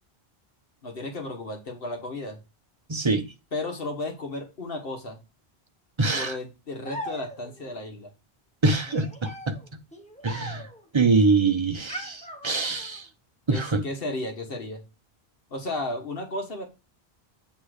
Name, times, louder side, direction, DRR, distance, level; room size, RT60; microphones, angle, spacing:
voice 1, 0.8-2.4 3.5-5.2 6.1-8.1 13.5-14.8 15.5-16.7, left 2 dB, 65° left, 1.5 m, -34 dB
voice 2, 2.9-3.2 6.0-6.4 8.6-9.6 10.2-10.7 10.9-13.1 13.5-13.8, right 3 dB, 30° right, 0.7 m, -24 dB
sound 1, 6.8-7.7 8.9-10.9 11.9-13.0, equal, 5° left, 1.0 m, -39 dB
8.4 x 3.2 x 4.8 m
omnidirectional pair, 1.0 m